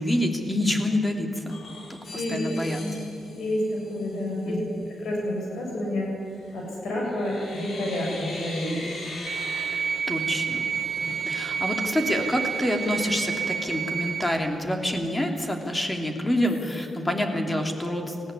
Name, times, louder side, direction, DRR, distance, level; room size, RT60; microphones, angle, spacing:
voice 1, 0.0-1.6 1.9-2.8 4.5-4.9 10.1-10.7 11.0-18.1, left 1 dB, 15° left, 3 dB, 2.9 m, -27 dB
sound 1, 1.5-4.5 6.3-6.7 7.0-14.3 14.7-14.8 15.1-16.0 16.4-16.9, left 2 dB, 70° left, 4.9 m, -42 dB
voice 2, 1.8-3.0 3.3-6.1 6.5-9.0 11.1-11.2, left 1 dB, 85° left, -1 dB, 7.3 m, -30 dB
sound 2, 9.3-14.3, right 7 dB, 70° right, 1.2 m, -29 dB
19.0 x 15.5 x 9.9 m, 2.5 s
cardioid pair, 85°, 0 cm